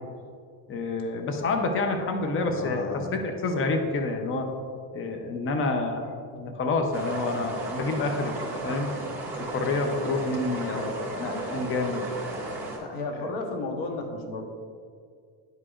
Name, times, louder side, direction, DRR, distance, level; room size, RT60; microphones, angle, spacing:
voice 1, 0.7-4.5 4.9-8.4 8.6-8.9 9.4-12.1, left 3 dB, 30° left, 4 dB, 0.7 m, -28 dB
voice 2, 2.4-3.2 12.8-14.5, left 2 dB, 85° left, 3 dB, 1.2 m, -33 dB
sound 1, 6.9-12.8, right 2 dB, 5° right, 1.7 m, -34 dB
11.0 x 4.9 x 2.4 m, 2.2 s
cardioid pair, 125°, 43 cm